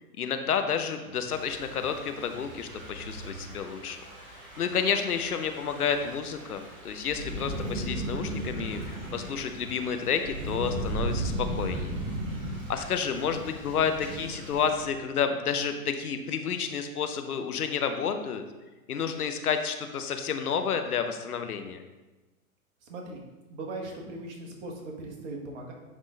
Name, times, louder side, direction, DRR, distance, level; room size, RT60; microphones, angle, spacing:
voice 1, 0.2-4.3 4.6-12.0 12.7-18.4 18.9-21.8, left 7 dB, 80° left, 7 dB, 0.8 m, -30 dB
Thunder / Rain, 1.3-14.9, right 1 dB, 25° right, 2.2 m, -36 dB
voice 2, 22.8-23.2 23.5-25.7, right 2 dB, 50° right, 0 dB, 1.8 m, -39 dB
9.8 x 3.6 x 3.9 m, 1.1 s
figure-of-eight pair, 110°, 44 cm